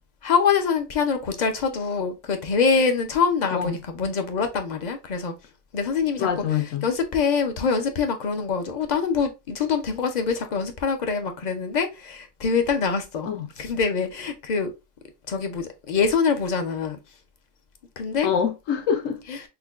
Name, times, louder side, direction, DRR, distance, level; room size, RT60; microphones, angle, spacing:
voice 1, 0.2-5.3 5.7-6.3 6.8-13.3 13.6-14.7 15.3-17.0 18.0-18.3 19.3-19.4, left 5 dB, 55° left, 0.5 m, -24 dB
voice 2, 6.2-6.9 13.3-13.5 18.2-19.2, left 8 dB, 80° left, 1.2 m, -25 dB
5.8 x 2.2 x 2.3 m
omnidirectional pair, 1.4 m